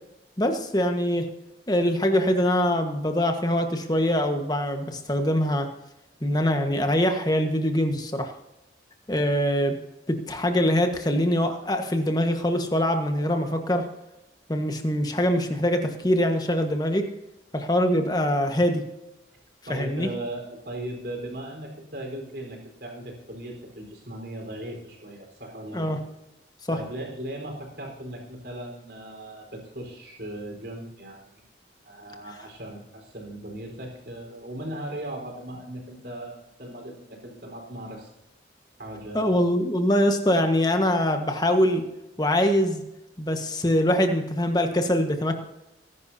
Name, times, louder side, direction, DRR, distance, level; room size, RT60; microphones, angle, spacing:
voice 1, 0.4-1.3 1.7-5.7 6.2-8.3 9.1-9.8 10.1-13.8 14.5-17.1 17.5-18.8 19.7-20.1 25.7-26.0 26.7-26.8 39.1-41.8 42.2-42.8 43.2-45.4, equal, 20° left, 5 dB, 1.4 m, -23 dB
voice 2, 19.7-25.9 26.7-31.4 31.8-38.1 38.8-39.4, right 1 dB, 60° right, 1 dB, 4.3 m, -38 dB
19.5 x 11.0 x 2.8 m, 0.91 s
head